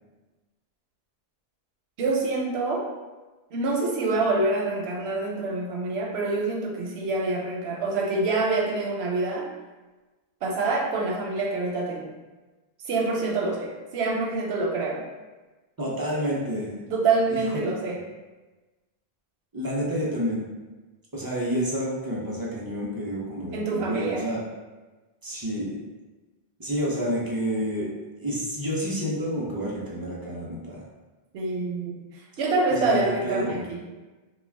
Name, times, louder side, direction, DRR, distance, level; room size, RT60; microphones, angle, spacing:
voice 1, 2.0-2.9 3.5-9.5 10.4-12.1 12.8-15.0 16.9-18.0 23.5-24.2 31.3-32.0 32.4-33.8, right 3 dB, 90° right, -2 dB, 0.9 m, -26 dB
voice 2, 15.8-16.8 17.3-17.4 19.5-20.4 21.1-24.4 25.2-25.8 26.6-27.9 28.2-30.8 32.7-33.6, equal, 35° right, -5 dB, 0.3 m, -29 dB
2.3 x 2.3 x 3.2 m, 1.2 s
omnidirectional pair, 1.0 m